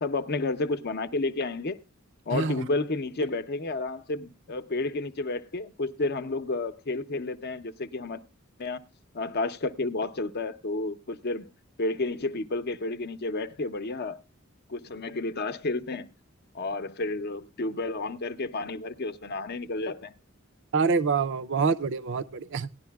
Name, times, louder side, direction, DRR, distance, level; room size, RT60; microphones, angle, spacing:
voice 1, 0.0-1.8 2.3-8.2 8.6-8.8 9.1-11.5 11.8-14.2 14.7-16.1 16.5-20.1, left 2 dB, 50° left, 0.7 m, -31 dB
voice 2, 2.3-2.7 20.7-22.7, right 5 dB, 65° right, 0.5 m, -26 dB
18.0 x 11.0 x 2.3 m
head